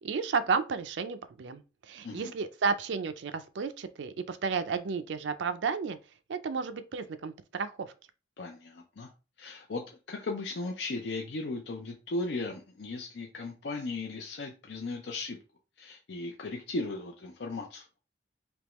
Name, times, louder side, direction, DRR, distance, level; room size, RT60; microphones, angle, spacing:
voice 1, 0.0-6.0 6.3-7.9, right 5 dB, 75° right, 0.4 m, -32 dB
voice 2, 2.0-2.3 8.4-9.1 9.4-15.4 15.8-17.9, left 3 dB, 65° left, 0.5 m, -37 dB
3.5 x 3.0 x 3.0 m
head